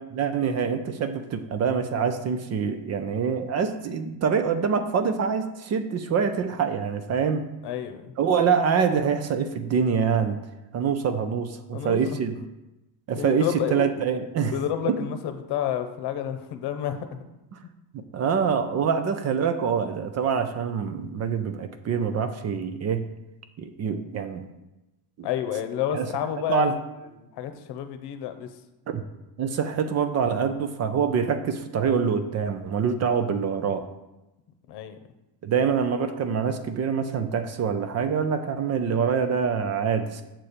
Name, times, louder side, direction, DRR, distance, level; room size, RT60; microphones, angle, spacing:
voice 1, 0.1-7.4 8.2-10.4 10.7-12.4 13.1-14.5 14.9-15.0 17.5-17.6 17.9-23.1 23.6-24.5 25.2-25.3 25.9-26.1 26.5-26.8 28.9-29.0 29.4-33.9 35.4-40.2, right 6 dB, 40° right, 9 dB, 0.5 m, -25 dB
voice 2, 7.6-8.1 11.7-12.0 13.2-13.9 14.5-17.2 25.2-26.7 27.2-28.5 34.7-35.0, left 10 dB, 70° left, 8 dB, 0.9 m, -30 dB
7.6 x 4.2 x 6.7 m, 0.98 s
cardioid pair, 175°, 42 cm